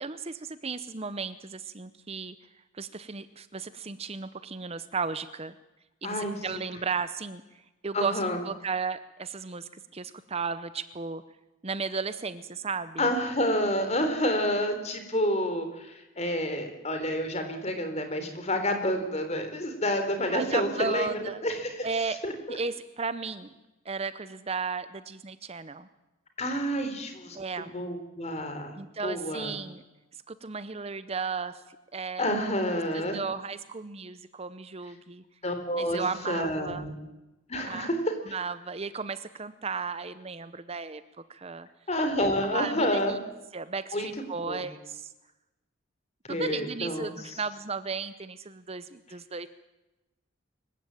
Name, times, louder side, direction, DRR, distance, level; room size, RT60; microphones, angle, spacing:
voice 1, 0.0-2.3 2.7-5.5 6.0-7.4 7.8-11.2 11.6-13.1 20.3-21.4 21.8-22.2 22.5-23.5 23.8-25.9 27.3-27.7 28.8-29.8 30.3-31.6 31.9-32.3 32.9-35.2 35.8-36.8 37.7-37.9 38.3-41.0 41.3-41.7 42.5-43.2 43.5-45.1 46.3-49.5, right 5 dB, 30° right, 13 dB, 0.7 m, -34 dB
voice 2, 6.0-6.4 7.9-8.4 13.0-21.9 22.2-22.6 26.4-27.4 27.7-28.8 29.0-29.5 32.2-33.2 35.4-36.0 36.3-36.9 37.5-38.0 41.9-43.1 43.9-44.1 44.5-44.6 46.3-47.1, equal, 35° left, 7 dB, 3.8 m, -29 dB
25.0 x 15.5 x 9.0 m, 1.0 s
head